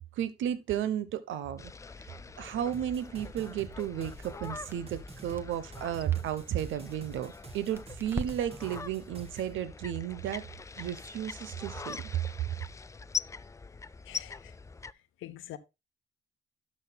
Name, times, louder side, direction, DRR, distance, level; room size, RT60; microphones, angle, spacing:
voice 1, 0.0-1.7 2.4-10.4 10.8-12.0, right 10 dB, 80° right, 0.9 m, -33 dB
sound 1, 1.6-14.9, left 4 dB, 15° left, 0.3 m, -43 dB
sound 2, 2.7-9.5, right 4 dB, 30° right, 1.7 m, -49 dB
Crackle, 3.6-8.9, right 2 dB, 10° right, 1.3 m, -45 dB
voice 2, 14.0-14.5 15.2-15.6, left 13 dB, 90° left, 1.0 m, -44 dB
12.0 x 6.4 x 2.3 m
cardioid pair, 90°, 20 cm